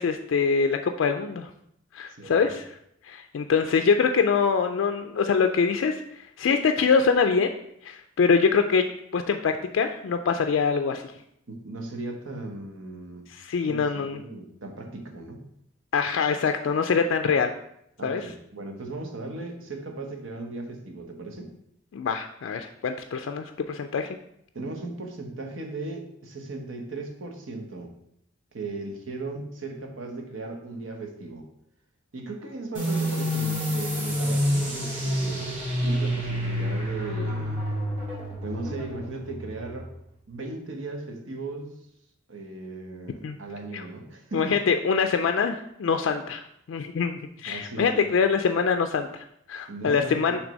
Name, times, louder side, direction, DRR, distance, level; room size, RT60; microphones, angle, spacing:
voice 1, 0.0-1.5 1.9-2.6 3.0-7.5 7.8-8.8 9.1-11.1 13.3-14.2 15.9-17.5 18.0-18.3 21.9-24.2 43.2-43.4 43.7-43.8 44.3-46.4 46.7-50.4, left 5 dB, 65° left, 6 dB, 0.3 m, -24 dB
voice 2, 11.5-13.3 13.7-15.4 18.0-21.5 24.5-27.9 28.5-31.5 32.1-37.6 38.4-39.9 40.3-41.8 42.3-44.6 47.5-48.1 49.7-50.4, right 2 dB, 70° right, 3 dB, 1.0 m, -37 dB
sound 1, 32.7-40.0, equal, 40° right, 2.4 m, -28 dB
6.1 x 3.3 x 5.1 m, 0.75 s
head